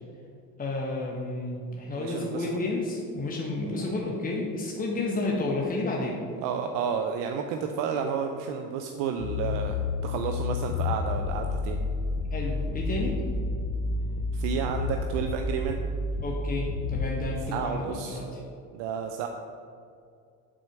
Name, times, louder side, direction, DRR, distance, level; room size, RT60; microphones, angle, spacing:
voice 1, 0.6-6.2 12.3-13.2 16.2-18.4, left 2 dB, 20° left, -2 dB, 1.2 m, -31 dB
voice 2, 1.9-2.7 3.6-4.0 6.4-9.8 10.0-11.8 14.3-15.9 17.5-18.2 18.7-19.3, right 7 dB, 70° right, 5 dB, 0.7 m, -31 dB
sound 1, 9.2-17.2, left 3 dB, 60° left, 1.0 m, -30 dB
6.3 x 4.3 x 6.5 m, 2.3 s
hypercardioid pair, 75°, 44 cm